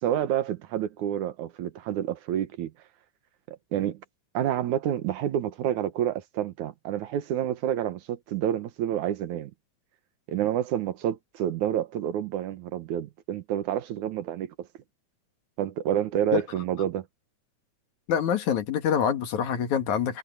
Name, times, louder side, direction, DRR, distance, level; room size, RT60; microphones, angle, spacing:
voice 1, 0.0-2.7 3.5-4.0 4.3-9.5 10.3-14.7 15.6-17.1, right 10 dB, 85° right, 2.6 m, -28 dB
voice 2, 18.1-20.2, left 8 dB, 80° left, 3.2 m, -25 dB
omnidirectional pair, 3.4 m